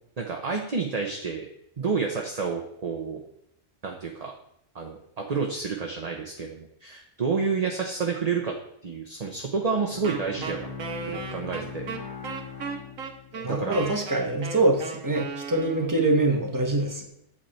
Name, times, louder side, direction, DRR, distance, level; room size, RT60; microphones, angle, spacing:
voice 1, 0.2-1.5 1.8-3.2 3.8-4.3 4.7-8.6 8.8-10.7 11.1-11.8 13.4-13.8, right 5 dB, 35° right, 1 dB, 0.8 m, -29 dB
Bowed string instrument, 9.6-13.6, left 6 dB, 30° left, 1.5 m, -40 dB
Wind instrument woodwind instrument, 10.0-16.1, right 5 dB, 90° right, 1.4 m, -36 dB
voice 2, 13.3-17.0, right 2 dB, 15° right, 2 dB, 1.2 m, -24 dB
8.1 x 7.3 x 4.4 m, 0.77 s
omnidirectional pair, 1.4 m